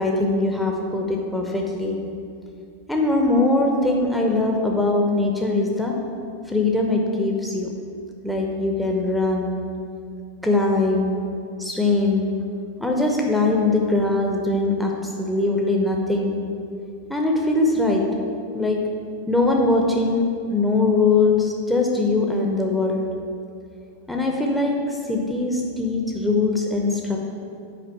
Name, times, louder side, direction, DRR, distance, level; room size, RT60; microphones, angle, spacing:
voice 1, 0.0-2.0 2.9-6.0 6.5-7.7 8.2-9.7 10.4-11.2 11.6-12.4 12.8-16.4 17.1-18.1 18.5-18.8 19.3-23.1 24.1-27.2, left 2 dB, ahead, -1 dB, 0.8 m, -21 dB
8.4 x 5.0 x 4.7 m, 2.5 s
figure-of-eight pair, 90°, 0 cm